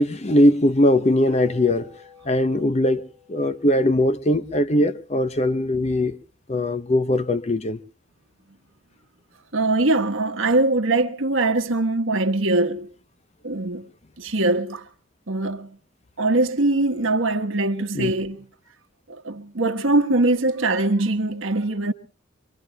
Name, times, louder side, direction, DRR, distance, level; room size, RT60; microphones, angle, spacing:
voice 1, 0.0-1.9 2.3-6.2 6.5-7.8 17.9-18.1, left 1 dB, 30° left, 0.7 m, -20 dB
sound 1, 1.3-5.9, left 6 dB, 55° left, 7.9 m, -50 dB
voice 2, 9.5-12.9 13.4-13.9 14.2-14.8 15.3-15.8 16.2-18.5 19.1-21.9, right 2 dB, 75° right, 1.3 m, -22 dB
25.5 x 23.5 x 2.3 m
head